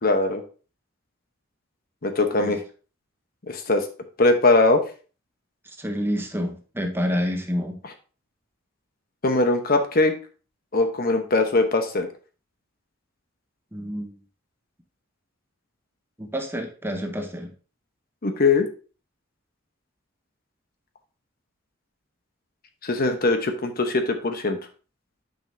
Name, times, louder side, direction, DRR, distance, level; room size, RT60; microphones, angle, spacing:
voice 1, 0.0-0.4 2.0-2.6 3.5-3.9 4.2-4.8 9.2-10.1 10.7-12.1 18.2-18.7 22.8-24.6, left 2 dB, 45° left, 6 dB, 0.9 m, -21 dB
voice 2, 5.8-7.8 13.7-14.2 16.2-17.5, equal, 10° right, 5 dB, 0.8 m, -28 dB
9.2 x 5.4 x 2.7 m, 0.37 s
head